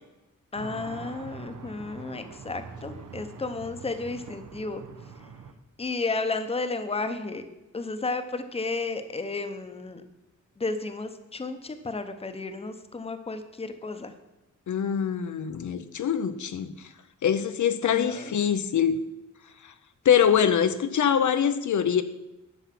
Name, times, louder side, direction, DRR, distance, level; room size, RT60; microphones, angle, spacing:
voice 1, 0.5-4.8 5.8-7.4 7.7-10.0 10.6-14.1 17.8-18.3, left 3 dB, 20° left, 9 dB, 0.8 m, -33 dB
sound 1, 0.5-5.5, right 5 dB, 80° right, 1.0 m, -43 dB
voice 2, 14.7-16.9 17.2-19.0 19.6-19.7 20.0-22.0, left 8 dB, 70° left, 10 dB, 0.6 m, -24 dB
11.0 x 7.2 x 5.9 m, 0.99 s
wide cardioid pair, 155°, 31 cm